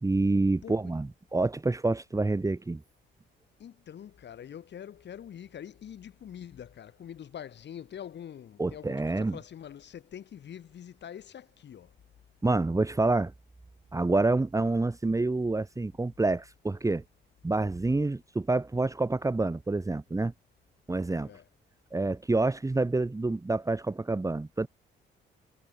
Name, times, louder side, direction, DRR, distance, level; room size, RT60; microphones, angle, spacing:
voice 1, 0.0-2.8 8.6-9.4 12.4-13.3 13.9-17.0 17.4-20.3 20.9-21.3 21.9-24.7, right 2 dB, 15° right, 1.7 m, -27 dB
voice 2, 3.6-11.9 21.2-21.4, left 9 dB, 60° left, 4.7 m, -45 dB
cardioid pair, 90°, 20 cm